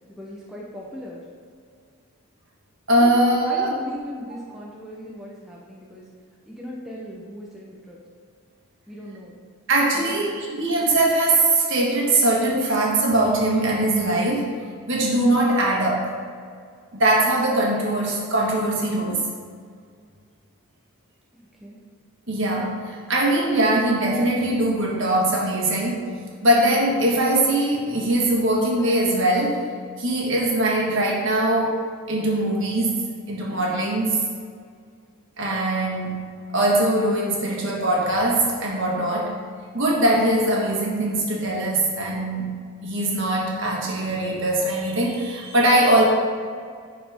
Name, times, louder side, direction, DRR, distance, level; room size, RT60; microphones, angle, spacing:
voice 1, 0.1-1.2 3.0-3.1 3.4-6.1 6.5-8.0 8.9-9.4 9.9-10.4 21.6-21.8, equal, ahead, -5 dB, 0.8 m, -38 dB
voice 2, 2.9-3.7 9.7-14.5 14.9-16.1 16.9-19.2 22.3-26.1 26.4-29.6 30.0-31.8 32.1-32.9 33.3-34.2 35.4-39.4 39.7-42.6 42.8-46.1, right 1 dB, 55° right, -3 dB, 1.6 m, -21 dB
10.5 x 4.3 x 3.6 m, 2.1 s
head